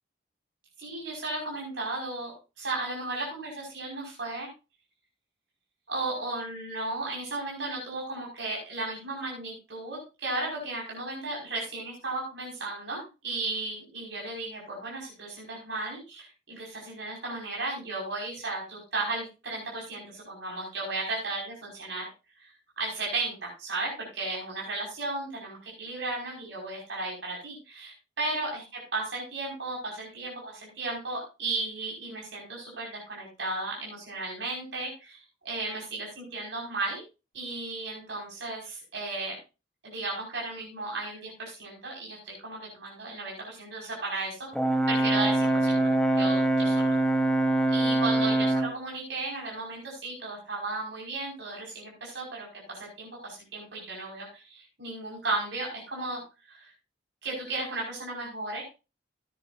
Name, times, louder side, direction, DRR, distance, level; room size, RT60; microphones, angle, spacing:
voice 1, 0.8-4.5 5.9-22.1 22.4-22.5 22.8-37.0 37.3-39.4 39.8-44.5 44.9-47.0 47.7-56.2 56.5-56.7 57.2-58.6, right 2 dB, 65° right, -3 dB, 5.4 m, -35 dB
Brass instrument, 44.5-48.8, right 2 dB, 5° left, 1.1 m, -24 dB
15.5 x 10.0 x 2.6 m, 0.29 s
head